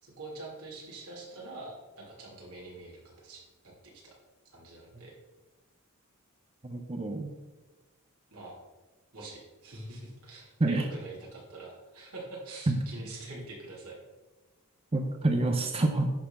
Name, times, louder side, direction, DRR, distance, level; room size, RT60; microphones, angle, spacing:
voice 1, 0.0-3.7 4.5-5.1 8.3-8.6 9.1-14.0, right 2 dB, 80° right, -3 dB, 3.0 m, -45 dB
voice 2, 6.6-7.3 10.6-10.8 12.7-12.8 14.9-16.1, right 2 dB, 25° right, 4 dB, 0.6 m, -27 dB
10.5 x 4.2 x 5.8 m, 1.2 s
head